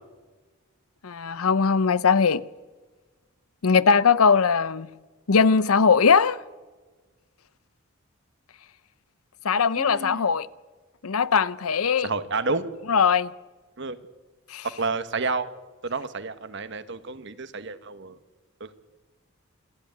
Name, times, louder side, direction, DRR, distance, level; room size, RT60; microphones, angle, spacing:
voice 1, 1.0-2.4 3.6-4.9 5.3-6.4 9.4-10.5 11.0-12.1 12.9-13.3 14.5-14.7, left 5 dB, 90° left, 0.7 m, -20 dB
voice 2, 9.7-10.3 12.0-12.7 13.8-14.0 14.6-15.6 15.8-18.2 18.6-18.7, right 3 dB, 55° right, 1.3 m, -30 dB
28.0 x 11.5 x 9.3 m
head